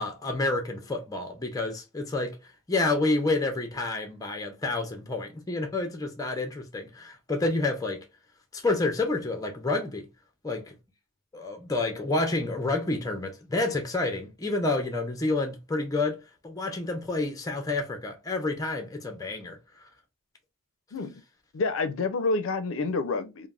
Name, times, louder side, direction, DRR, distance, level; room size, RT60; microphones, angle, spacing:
voice 1, 0.0-2.4 2.7-8.0 8.5-10.1 10.4-10.7 11.3-19.6, left 2 dB, 15° left, 0.5 m, -29 dB
voice 2, 21.5-23.5, left 3 dB, 75° left, 0.4 m, -28 dB
3.2 x 2.0 x 2.3 m
head